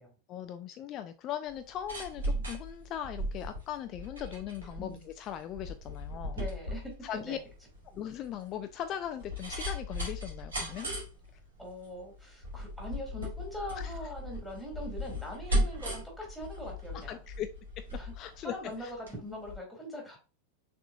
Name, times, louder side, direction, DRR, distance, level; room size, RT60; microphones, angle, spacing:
voice 1, 0.3-6.4 7.0-7.4 7.9-10.9 13.8-13.9 16.9-17.5 17.8-17.9 18.1-18.5 18.8-18.9, left 10 dB, 35° left, 9 dB, 0.4 m, -39 dB
sound 1, 1.5-19.2 19.5-19.6, equal, 70° right, 2.8 m, -37 dB
voice 2, 6.3-7.4 11.6-17.2 18.0-18.1 18.4-20.2, left 1 dB, ahead, -1 dB, 2.2 m, -42 dB
6.1 x 3.6 x 2.3 m, 0.33 s
figure-of-eight pair, 90°, 0 cm